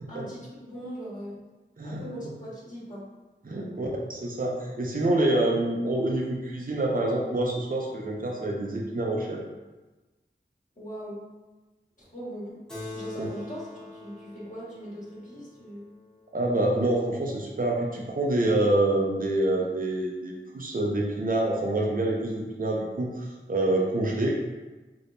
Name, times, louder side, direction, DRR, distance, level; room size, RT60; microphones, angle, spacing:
voice 1, 0.1-1.4 1.8-3.0 3.5-3.9 10.8-11.2 12.0-12.6 12.9-15.9, equal, 40° left, -9 dB, 1.4 m, -40 dB
voice 2, 3.4-9.4 13.2-13.3 16.3-24.3, right 1 dB, 45° right, -2 dB, 0.5 m, -26 dB
Keyboard (musical), 12.7-17.6, left 2 dB, 5° left, 0.9 m, -44 dB
3.4 x 3.0 x 2.6 m, 1.2 s
wide cardioid pair, 50°, 20 cm